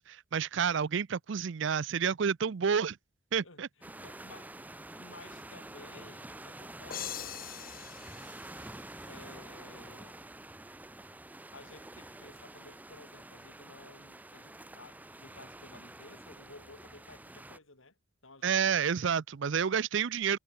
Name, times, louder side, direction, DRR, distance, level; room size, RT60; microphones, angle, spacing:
voice 1, 0.0-3.0 3.3-3.7 18.4-20.4, right 7 dB, 60° right, 0.5 m, -29 dB
voice 2, 3.4-4.6 5.0-7.4 9.1-10.2 11.5-17.9 18.2-19.1, left 3 dB, 70° left, 4.5 m, -54 dB
sound 1, 3.8-17.6, right 1 dB, 10° right, 0.6 m, -48 dB
sound 2, 6.9-9.6, left 10 dB, 45° left, 2.3 m, -43 dB
head